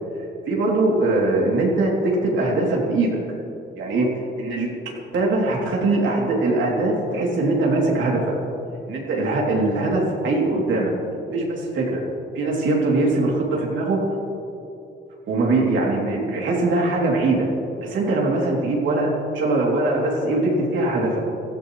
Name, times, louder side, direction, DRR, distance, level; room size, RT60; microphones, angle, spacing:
voice 1, 0.5-3.2 3.8-4.1 4.4-4.7 5.1-8.3 8.9-10.9 11.3-12.0 12.3-14.0 15.3-17.5 17.8-21.2, right 2 dB, 75° right, -2 dB, 3.1 m, -21 dB
18.0 x 13.0 x 3.2 m, 2.7 s
cardioid pair, 90°, 20 cm